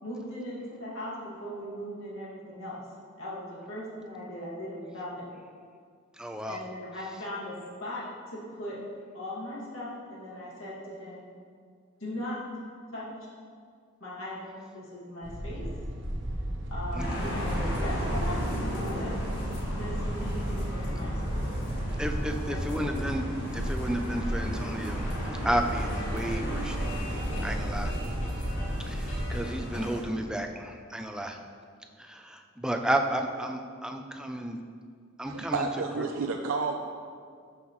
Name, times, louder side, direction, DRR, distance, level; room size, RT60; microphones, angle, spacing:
voice 1, 0.0-2.8 3.2-5.3 6.5-8.8 9.1-11.2 12.0-12.5 12.9-13.3 14.0-15.7 16.7-19.2 19.8-21.5 22.5-22.7, left 1 dB, 75° left, -7 dB, 2.3 m, -39 dB
voice 2, 6.1-6.6 16.9-17.1 22.0-25.1 25.4-26.9 27.4-27.9 28.8-31.4 32.0-34.6 35.2-35.7 36.0-36.1, right 1 dB, 5° right, 4 dB, 0.4 m, -32 dB
sound 1, 15.2-29.5, equal, 60° right, 0.9 m, -34 dB
sound 2, 17.0-30.0, equal, 55° left, 2.2 m, -35 dB
voice 3, 35.3-36.7, right 4 dB, 85° right, 3 dB, 0.5 m, -30 dB
13.0 x 5.6 x 3.1 m, 2.1 s
head